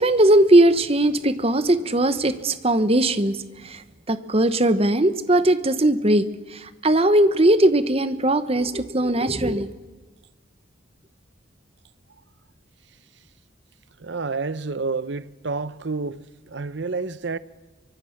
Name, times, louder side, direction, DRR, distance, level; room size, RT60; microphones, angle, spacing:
voice 1, 0.0-3.4 3.6-9.7, right 1 dB, 30° right, 1.1 m, -19 dB
voice 2, 14.0-17.4, right 4 dB, 60° right, 0.8 m, -29 dB
24.5 x 24.0 x 5.9 m
head